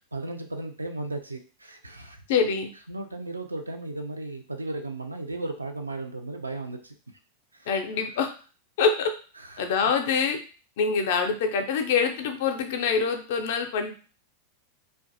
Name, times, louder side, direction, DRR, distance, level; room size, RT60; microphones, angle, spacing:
voice 1, 0.1-2.2 2.9-7.0 7.5-7.7 9.4-9.6, right 2 dB, 80° right, 5 dB, 0.3 m, -35 dB
voice 2, 2.3-2.7 7.7-8.3 8.8-9.1 9.6-10.4 10.8-13.9, left 5 dB, 55° left, 6 dB, 0.4 m, -25 dB
2.5 x 2.2 x 2.6 m, 0.38 s
figure-of-eight pair, 90°, 0 cm